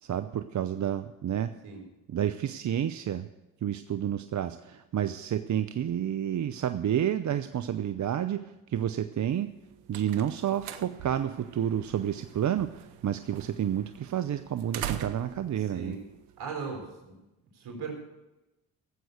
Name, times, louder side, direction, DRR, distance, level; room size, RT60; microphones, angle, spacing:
voice 1, 0.0-1.5 2.1-3.3 3.6-9.5 9.9-16.0, right 10 dB, 45° right, 11 dB, 0.7 m, -30 dB
sound 1, 9.4-16.9, right 11 dB, 85° right, 0.8 m, -43 dB
voice 2, 15.6-16.0 16.4-17.2 17.5-18.0, right 5 dB, 70° right, 2 dB, 4.3 m, -38 dB
14.0 x 7.8 x 8.1 m, 0.98 s
hypercardioid pair, 50°, 40 cm